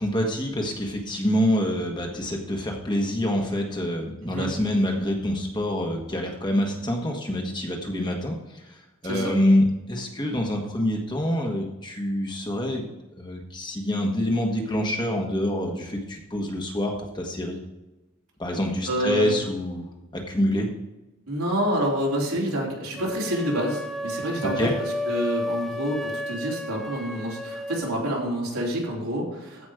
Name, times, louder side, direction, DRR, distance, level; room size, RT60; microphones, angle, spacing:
voice 1, 0.0-8.6 9.0-12.9 13.2-17.6 18.4-20.7 24.6-24.7, left 1 dB, 20° left, 1 dB, 1.4 m, -26 dB
voice 2, 18.9-19.4 21.3-29.7, equal, 85° right, -3 dB, 3.6 m, -28 dB
sound 1, 23.0-27.9, left 1 dB, ahead, 0.5 m, -32 dB
14.5 x 5.3 x 4.9 m, 1.0 s
head